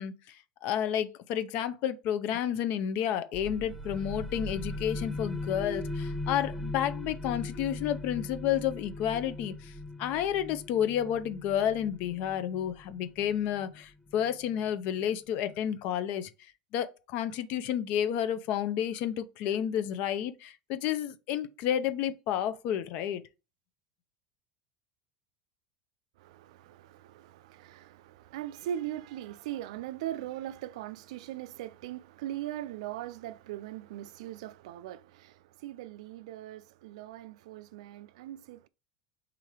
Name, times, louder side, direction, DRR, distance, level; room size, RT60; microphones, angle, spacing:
voice 1, 0.0-9.7 10.0-23.2, left 10 dB, 55° left, 0.6 m, -31 dB
sound 1, 3.3-14.7, left 2 dB, ahead, 0.4 m, -39 dB
voice 2, 26.2-38.7, right 12 dB, 85° right, 0.3 m, -40 dB
3.7 x 2.9 x 4.7 m
supercardioid pair, 135°, 3 cm